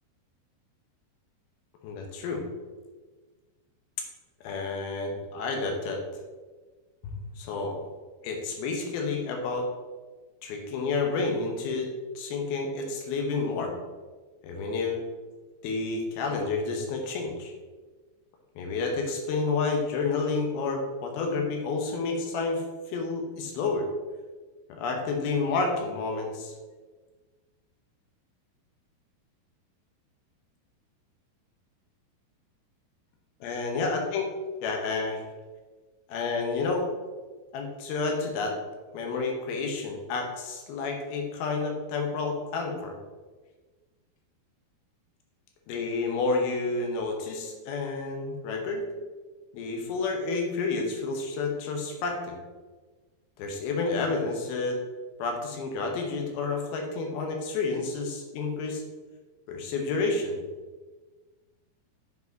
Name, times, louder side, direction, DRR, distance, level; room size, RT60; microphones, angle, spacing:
voice 1, 1.8-2.4 4.4-6.0 7.0-7.8 8.2-9.7 10.4-11.9 12.2-13.7 14.4-15.0 15.6-17.5 18.6-23.9 24.7-26.5 33.4-34.3 34.6-35.2 36.1-36.9 37.5-38.6 38.9-43.0 45.7-48.8 49.5-52.4 53.4-54.8 55.2-58.8 59.5-60.4, left 3 dB, 75° left, 2 dB, 2.9 m, -30 dB
7.5 x 5.4 x 3.9 m, 1.3 s
omnidirectional pair, 4.6 m